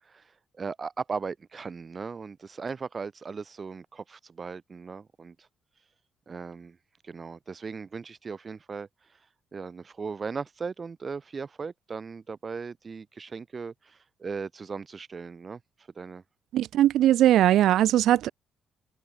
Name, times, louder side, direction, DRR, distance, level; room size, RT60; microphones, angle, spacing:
voice 1, 0.0-5.3 6.3-6.8 7.0-8.9 9.5-15.6 15.9-16.2, right 5 dB, 30° right, 1.6 m, -37 dB
voice 2, 16.5-18.3, right 12 dB, 80° right, 0.3 m, -20 dB
open air
cardioid pair, 125°, 0 cm